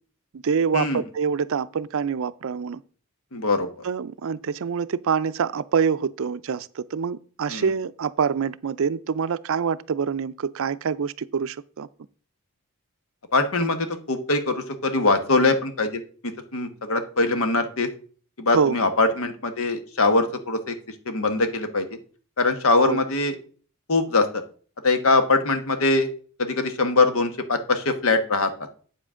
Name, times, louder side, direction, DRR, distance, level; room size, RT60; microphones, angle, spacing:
voice 1, 0.3-2.8 3.8-11.9 18.5-18.8 22.8-23.0, right 6 dB, 65° right, 0.4 m, -25 dB
voice 2, 3.3-3.7 7.5-7.6 13.3-17.9 18.4-20.7 21.1-21.9 22.4-23.3 23.9-24.4 24.8-26.1 26.4-28.7, left 3 dB, 65° left, 1.2 m, -22 dB
8.5 x 7.3 x 3.7 m
head